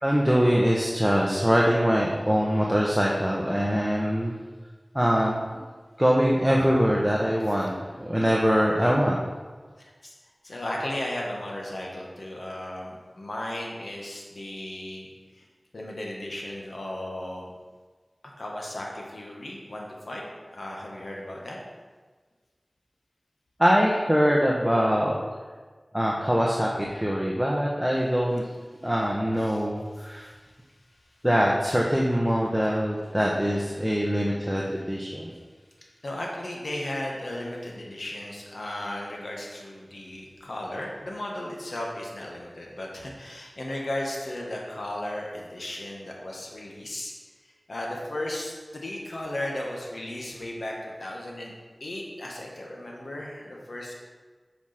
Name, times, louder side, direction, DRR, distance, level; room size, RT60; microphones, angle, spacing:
voice 1, 0.0-4.3 4.9-5.4 6.0-9.2 23.6-25.2 25.9-28.5 28.8-30.3 31.2-35.3, equal, 5° right, -3 dB, 1.2 m, -23 dB
voice 2, 9.8-10.1 10.4-15.5 15.7-17.5 18.4-20.3 20.5-21.6 29.4-30.4 31.2-31.5 35.3-35.4 35.8-47.1 47.4-51.5 51.8-53.9, left 1 dB, 85° left, -2 dB, 1.6 m, -35 dB
8.2 x 5.0 x 5.9 m, 1.4 s
wide cardioid pair, 50°, 0 cm